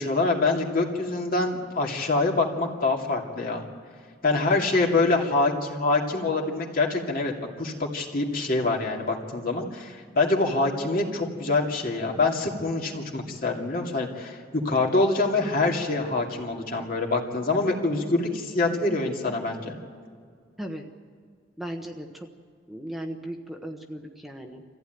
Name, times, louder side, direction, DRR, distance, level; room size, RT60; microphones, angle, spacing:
voice 1, 0.0-3.6 4.2-7.3 7.6-14.4 14.6-19.7, left 3 dB, 50° left, 1 dB, 2.5 m, -25 dB
voice 2, 4.3-4.9 5.3-5.4 20.6-20.9 21.6-22.3 22.7-24.6, right 1 dB, ahead, 2 dB, 1.1 m, -37 dB
24.5 x 15.0 x 9.2 m, 2.1 s
head